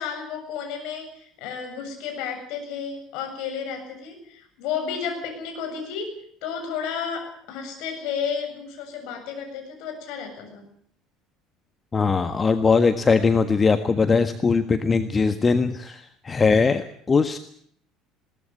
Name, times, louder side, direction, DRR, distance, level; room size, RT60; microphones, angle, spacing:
voice 1, 0.0-6.1 6.4-10.7, left 7 dB, 60° left, 4 dB, 7.4 m, -32 dB
voice 2, 11.9-17.4, left 4 dB, 25° left, 9 dB, 1.5 m, -20 dB
21.0 x 18.0 x 9.1 m, 0.63 s
figure-of-eight pair, 65°, 0 cm